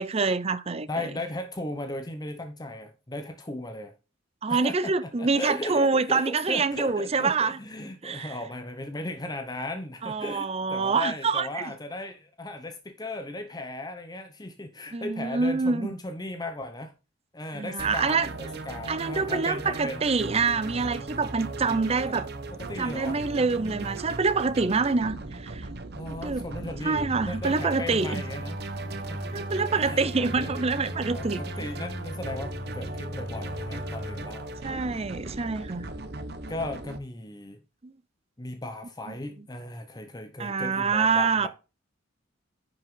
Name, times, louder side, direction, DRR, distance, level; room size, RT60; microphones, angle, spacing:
voice 1, 0.0-0.9 4.4-7.6 8.0-8.4 10.0-11.7 14.9-15.9 17.5-18.3 18.9-22.3 22.8-25.7 26.1-26.5 26.8-28.2 29.3-31.7 34.6-35.9 39.1-39.2 40.4-41.5, right 4 dB, 30° right, 0.6 m, -26 dB
voice 2, 0.9-3.9 4.5-16.9 17.3-20.0 22.0-22.2 22.5-23.9 25.9-30.7 31.1-35.0 36.5-37.6 38.4-41.5, left 1 dB, 20° left, 0.9 m, -37 dB
sound 1, 17.8-37.0, right 3 dB, 55° right, 1.0 m, -38 dB
sound 2, 26.9-34.2, left 1 dB, 55° left, 2.7 m, -37 dB
10.0 x 5.8 x 3.7 m
head